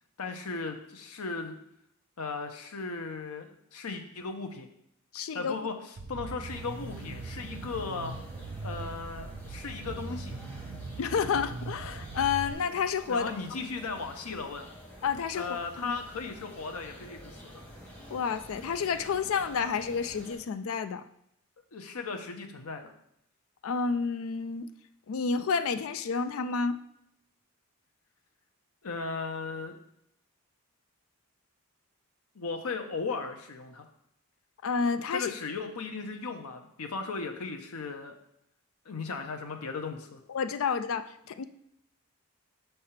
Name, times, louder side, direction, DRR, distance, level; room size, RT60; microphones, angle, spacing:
voice 1, 0.2-1.6 2.2-4.7 5.3-8.2 8.6-10.4 13.1-14.7 15.3-17.6 21.7-22.9 28.8-29.8 32.3-33.9 35.1-38.1 38.9-40.2, left 4 dB, 85° left, 5 dB, 0.8 m, -37 dB
voice 2, 5.1-5.6 11.0-13.3 15.0-15.5 15.8-15.9 18.1-21.0 23.6-24.7 25.1-26.8 34.6-35.3 40.3-41.4, left 5 dB, 65° left, 12 dB, 0.4 m, -30 dB
sound 1, 6.0-12.5, right 3 dB, 50° right, 0.4 m, -40 dB
sound 2, 6.5-20.4, equal, 10° left, 1.1 m, -49 dB
5.6 x 3.4 x 5.7 m, 0.74 s
head